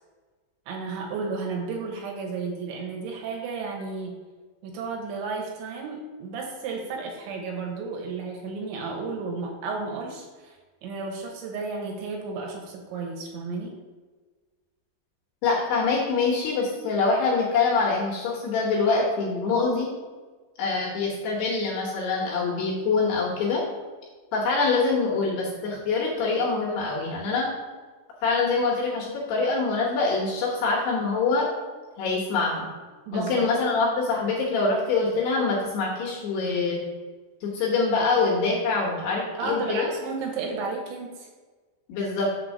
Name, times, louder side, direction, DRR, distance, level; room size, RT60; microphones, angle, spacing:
voice 1, 0.7-4.2 4.6-13.8 33.1-33.5 39.4-41.3, right 4 dB, 80° right, 0 dB, 3.4 m, -33 dB
voice 2, 15.4-19.9 20.6-23.6 24.3-27.5 28.2-31.5 32.0-32.7 33.1-36.8 37.4-39.9 41.9-42.3, left 4 dB, 70° left, -3 dB, 3.0 m, -24 dB
7.1 x 3.9 x 6.5 m, 1.4 s
omnidirectional pair, 5.3 m